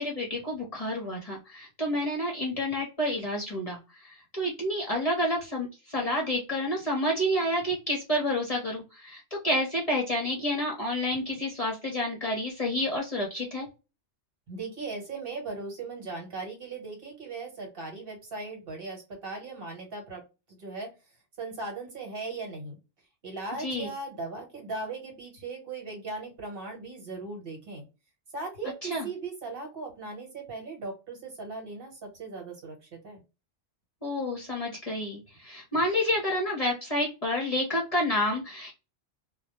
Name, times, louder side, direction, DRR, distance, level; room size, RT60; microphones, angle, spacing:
voice 1, 0.0-3.8 4.0-13.7 23.6-23.9 28.9-29.1 34.0-38.7, left 1 dB, 35° left, -1 dB, 0.7 m, -29 dB
voice 2, 14.5-20.2 20.5-20.9 21.4-22.8 23.2-27.8 28.3-33.2, right 3 dB, 55° right, 1 dB, 1.2 m, -38 dB
2.2 x 2.1 x 2.8 m, 0.28 s
omnidirectional pair, 1.2 m